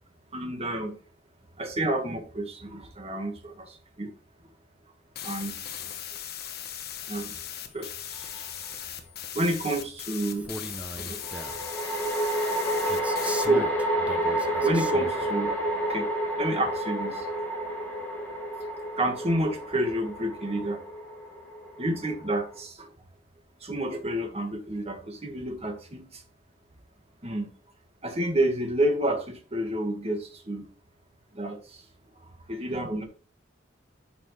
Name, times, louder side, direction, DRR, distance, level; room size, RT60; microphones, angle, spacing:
voice 1, 0.3-1.0 1.6-4.1 5.2-5.9 7.1-7.4 7.7-8.9 9.3-10.5 10.9-11.2 13.3-13.7 14.6-15.5 15.8-16.1 16.4-17.3 19.0-20.8 21.8-22.9 23.6-26.2 27.2-27.5 28.0-30.6 31.3-31.8 32.5-33.0, right 1 dB, 35° right, 4 dB, 1.8 m, -29 dB
sound 1, 5.1-13.5, left 9 dB, 55° left, 1.1 m, -39 dB
sound 2, 8.3-8.4 11.2-22.6, right 1 dB, 10° left, 2.9 m, -30 dB
Male speech man speaking, 10.3-11.7 12.9-15.3, right 1 dB, 5° right, 0.7 m, -39 dB
9.2 x 5.9 x 3.3 m, 0.39 s
head